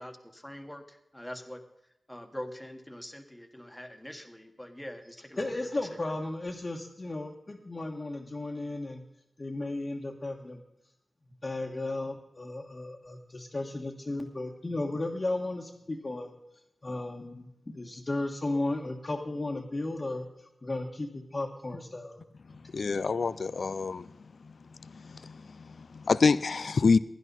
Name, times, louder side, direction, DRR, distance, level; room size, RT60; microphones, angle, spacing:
voice 1, 0.0-1.6 2.1-5.5 5.9-6.0, equal, 5° left, 1.4 m, -44 dB
voice 2, 5.4-9.0 9.4-10.6 11.4-16.3 16.8-20.2 20.6-22.2, left 2 dB, 40° left, 1.5 m, -34 dB
voice 3, 22.7-24.1 24.8-27.0, left 4 dB, 70° left, 0.4 m, -27 dB
17.0 x 11.0 x 4.1 m
wide cardioid pair, 85°, 0 cm